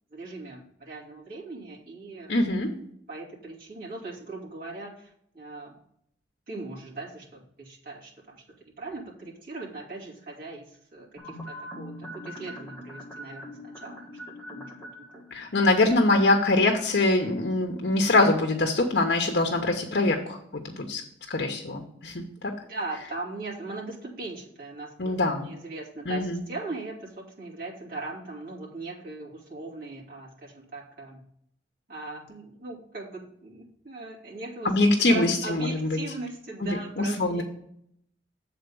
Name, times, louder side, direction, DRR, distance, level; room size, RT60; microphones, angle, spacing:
voice 1, 0.1-2.3 3.1-5.8 6.5-14.0 14.5-15.2 22.6-25.2 25.4-31.2 31.9-37.4, right 3 dB, 55° right, -4 dB, 2.7 m, -39 dB
voice 2, 2.3-2.7 15.3-20.4 20.6-21.0 21.3-22.5 25.0-25.5 26.1-26.4 34.6-36.0 36.6-37.4, left 2 dB, 60° left, 3 dB, 0.9 m, -23 dB
sound 1, 11.2-16.5 16.8-16.9, equal, 10° left, 1.6 m, -43 dB
8.0 x 4.2 x 6.9 m, 0.70 s
head